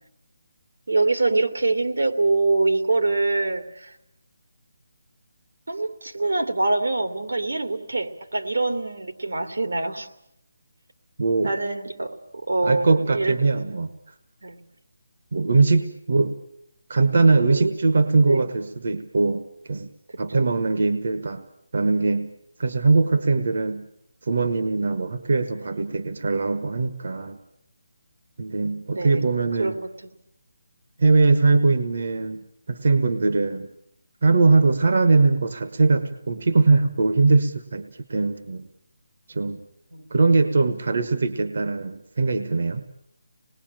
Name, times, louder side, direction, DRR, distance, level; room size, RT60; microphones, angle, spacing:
voice 1, 0.9-3.9 5.7-10.1 11.4-12.1 12.5-13.5 14.4-14.6 17.5-17.7 18.2-18.5 20.3-20.6 28.9-29.2 29.6-30.1 39.9-40.1, right 3 dB, 85° right, 7 dB, 2.7 m, -24 dB
voice 2, 11.2-11.5 12.6-13.9 15.3-16.3 16.9-19.9 20.2-21.4 21.7-22.3 22.6-23.9 24.2-27.4 28.4-29.8 31.0-33.7 34.2-38.6 39.3-39.6 40.1-42.8, right 3 dB, 50° right, 9 dB, 1.3 m, -21 dB
26.5 x 20.0 x 9.0 m, 0.80 s
hypercardioid pair, 180°, 0 cm